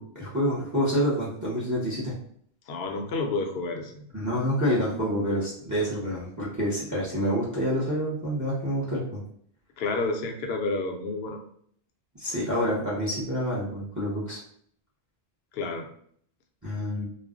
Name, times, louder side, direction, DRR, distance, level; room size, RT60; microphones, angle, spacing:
voice 1, 0.0-2.1 4.1-9.2 12.2-14.4 16.6-17.1, equal, 20° right, -6 dB, 0.6 m, -27 dB
voice 2, 2.7-4.0 9.8-11.4 15.5-15.9, left 3 dB, 70° left, 3 dB, 0.8 m, -30 dB
2.4 x 2.0 x 3.5 m, 0.62 s
omnidirectional pair, 1.2 m